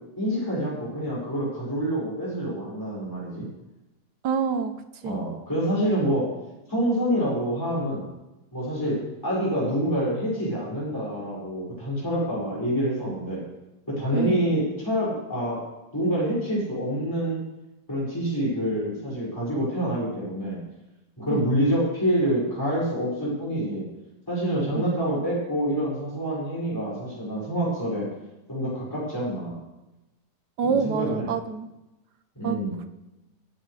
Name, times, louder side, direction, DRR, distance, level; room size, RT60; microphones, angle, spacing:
voice 1, 0.2-3.5 5.0-6.4 6.7-8.1 8.5-13.4 13.9-15.7 15.9-17.4 17.9-20.6 21.2-23.9 24.3-28.1 28.5-29.6 30.6-31.3 32.3-32.8, equal, 10° left, -7 dB, 6.1 m, -27 dB
voice 2, 4.2-4.7 5.0-5.2 14.1-14.5 21.3-21.4 24.7-24.9 30.6-31.7 32.4-32.6, right 5 dB, 70° right, 9 dB, 1.6 m, -26 dB
22.5 x 10.0 x 3.4 m, 0.98 s
omnidirectional pair, 1.9 m